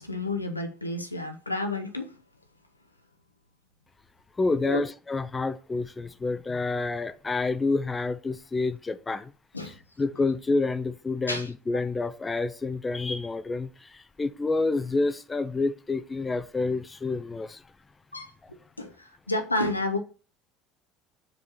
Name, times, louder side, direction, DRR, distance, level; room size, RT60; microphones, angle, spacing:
voice 1, 0.0-2.1 4.6-4.8 9.5-9.8 11.3-11.4 18.1-18.3 18.8-18.9 19.3-20.0, left 2 dB, 85° left, 0.7 m, -30 dB
voice 2, 4.4-9.3 9.6-17.6, left 3 dB, 20° left, 0.5 m, -28 dB
5.0 x 4.7 x 5.9 m
figure-of-eight pair, 65°, 0 cm